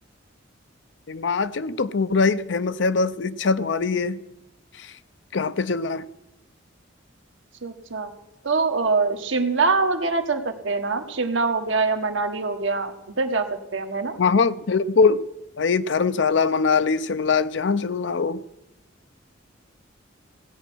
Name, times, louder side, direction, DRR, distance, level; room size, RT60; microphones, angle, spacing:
voice 1, 1.1-4.2 4.8-4.9 5.3-6.0 14.2-15.2 15.6-18.4, left 4 dB, 65° left, 0.5 m, -22 dB
voice 2, 7.6-8.1 8.4-13.5 13.7-14.2, right 4 dB, 70° right, 1.4 m, -24 dB
16.5 x 8.9 x 6.2 m
head